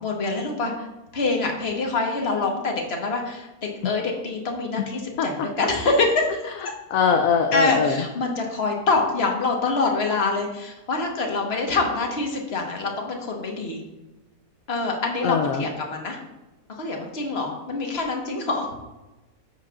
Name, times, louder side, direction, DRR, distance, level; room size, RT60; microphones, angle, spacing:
voice 1, 0.0-0.9 1.1-6.2 7.5-13.8 14.7-16.2 16.8-18.7, left 3 dB, 40° left, 1 dB, 1.4 m, -25 dB
voice 2, 6.9-8.0 15.2-15.6, left 6 dB, 70° left, 4 dB, 0.8 m, -21 dB
9.6 x 7.7 x 2.4 m, 1.1 s
omnidirectional pair, 1.8 m